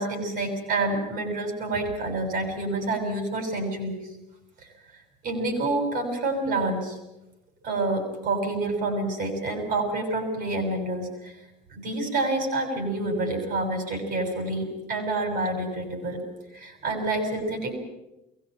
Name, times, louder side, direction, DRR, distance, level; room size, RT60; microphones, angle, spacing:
voice 1, 0.0-4.0 4.6-7.0 7.6-11.4 11.7-16.2 16.5-17.8, right 2 dB, 70° right, 5 dB, 6.7 m, -28 dB
22.5 x 17.5 x 9.1 m, 0.95 s
cardioid pair, 100°, 17 cm